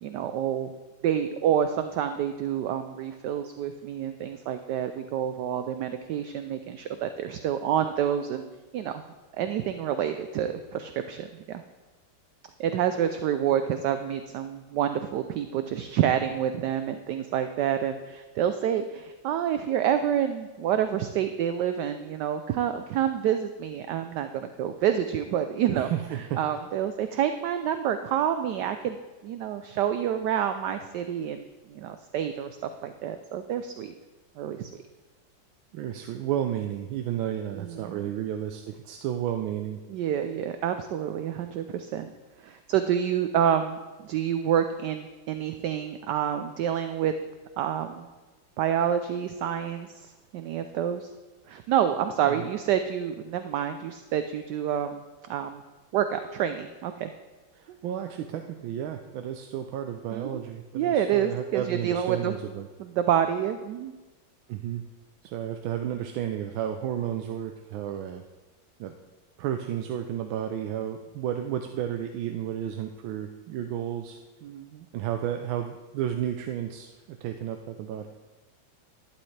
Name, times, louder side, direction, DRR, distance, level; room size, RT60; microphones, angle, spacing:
voice 1, 0.0-0.7 1.0-8.4 8.7-9.0 9.4-11.6 12.6-25.9 26.4-29.0 29.2-33.9 34.4-34.7 37.6-38.1 39.9-42.1 42.4-47.1 47.6-48.1 48.6-51.1 51.5-55.0 55.3-55.6 55.9-57.1 60.1-60.5 60.7-62.4 62.8-63.9 74.4-74.9, right 9 dB, 75° right, 9 dB, 1.1 m, -28 dB
voice 2, 25.7-26.4 35.7-39.8 52.2-52.5 57.5-62.7 64.5-64.8 65.2-68.2 68.8-68.9 69.4-74.2 74.9-78.1, right 10 dB, 90° right, 6 dB, 1.4 m, -32 dB
11.5 x 11.5 x 3.2 m, 1.2 s
omnidirectional pair, 2.1 m